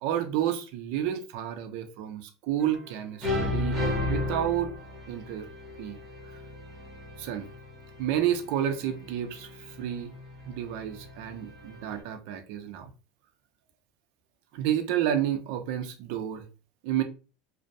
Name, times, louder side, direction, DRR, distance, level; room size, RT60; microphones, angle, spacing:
voice 1, 0.0-4.7 5.1-5.5 5.8-6.0 7.2-7.5 8.0-10.1 10.5-12.9 14.5-16.4 16.8-17.0, right 10 dB, 50° right, 0.4 m, -30 dB
sound 1, 2.6-3.0 3.2-12.0, left 2 dB, 15° right, 0.7 m, -35 dB
2.5 x 2.0 x 2.5 m
supercardioid pair, 175°, 0 cm